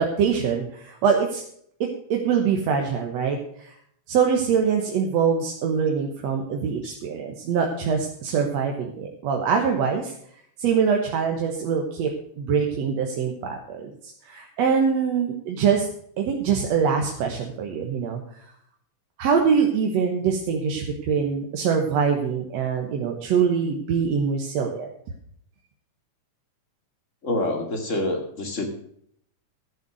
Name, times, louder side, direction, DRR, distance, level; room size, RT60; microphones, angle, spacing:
voice 1, 0.0-1.4 2.1-3.7 4.1-10.1 10.6-12.1 12.4-13.9 14.2-15.9 16.2-18.2 19.2-24.9, right 6 dB, 70° right, 2 dB, 2.4 m, -23 dB
voice 2, 27.2-28.7, left 1 dB, 30° left, 4 dB, 2.2 m, -27 dB
13.5 x 7.7 x 6.3 m, 0.67 s
omnidirectional pair, 3.3 m